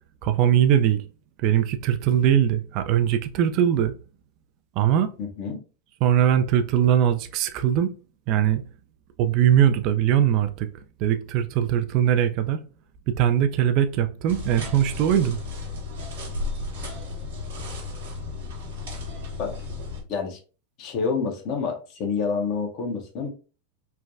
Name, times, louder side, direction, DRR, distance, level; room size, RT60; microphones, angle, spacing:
voice 1, 0.2-1.0 1.4-3.9 4.8-5.1 6.0-7.9 8.3-8.6 9.2-10.7 11.0-12.6 13.1-15.4, right 10 dB, 50° right, 0.4 m, -21 dB
voice 2, 5.2-5.6 19.4-19.5 20.1-20.4 20.8-23.3, left 5 dB, 50° left, 0.9 m, -28 dB
sound 1, 14.3-20.0, left 3 dB, 70° right, 1.0 m, -34 dB
3.3 x 2.2 x 2.5 m
hypercardioid pair, 95°, 0 cm